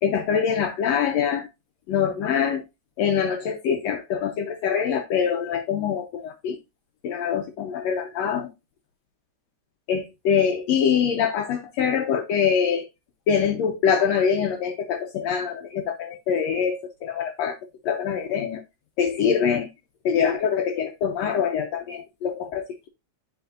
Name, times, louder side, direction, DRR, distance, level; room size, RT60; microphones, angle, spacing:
voice 1, 0.0-1.5 1.9-2.6 3.0-6.6 7.0-8.5 9.9-12.8 13.3-17.6 17.8-18.6 19.0-19.7 20.0-22.9, left 7 dB, 80° left, 1.5 m, -24 dB
10.5 x 5.0 x 2.4 m
omnidirectional pair, 4.0 m